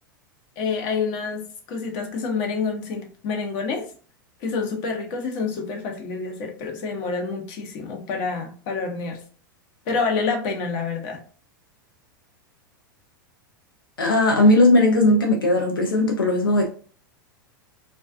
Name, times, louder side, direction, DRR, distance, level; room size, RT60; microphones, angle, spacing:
voice 1, 0.6-3.9 4.4-9.2 9.9-11.2, left 4 dB, 50° left, 0.7 m, -28 dB
voice 2, 14.0-16.7, left 1 dB, 85° left, 0.5 m, -18 dB
2.4 x 2.2 x 2.4 m
hypercardioid pair, 95°, 11 cm